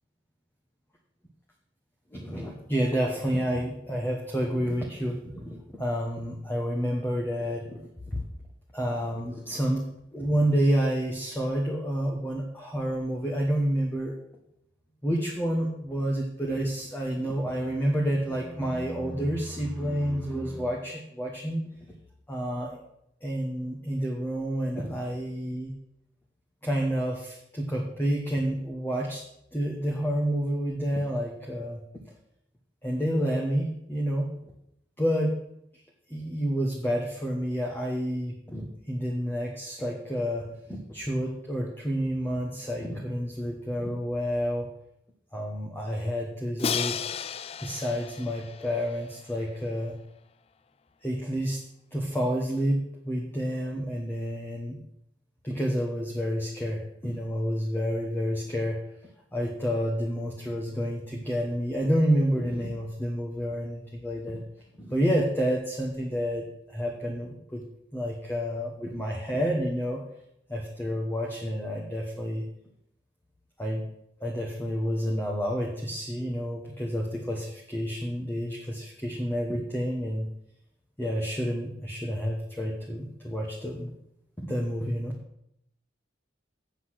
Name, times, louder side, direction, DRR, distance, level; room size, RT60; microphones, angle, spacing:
voice 1, 2.1-8.2 8.7-9.8 10.1-14.1 15.0-21.6 22.3-22.8 23.2-25.7 26.6-29.2 29.5-31.8 32.8-34.3 35.0-35.3 36.1-44.7 45.3-47.0 47.6-49.9 51.0-51.6 51.9-54.8 55.4-58.8 59.3-64.4 64.8-67.6 67.9-70.0 70.5-72.4 73.6-73.8 74.2-80.3 81.0-83.9 84.4-85.1, equal, 10° left, -1 dB, 1.2 m, -29 dB
Crash cymbal, 46.6-49.6, left 7 dB, 30° left, 0.3 m, -34 dB
8.1 x 7.9 x 6.4 m, 0.76 s
head